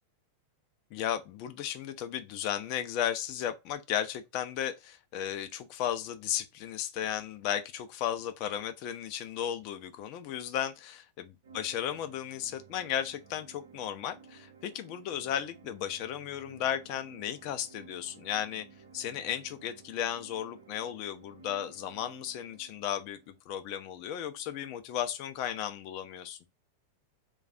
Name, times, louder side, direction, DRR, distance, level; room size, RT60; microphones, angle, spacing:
voice 1, 0.9-18.6 18.9-26.4, left 10 dB, 45° left, 0.5 m, -35 dB
sound 1, 11.4-23.4, right 5 dB, 60° right, 0.7 m, -55 dB
2.4 x 2.3 x 4.0 m
figure-of-eight pair, 90°, 0 cm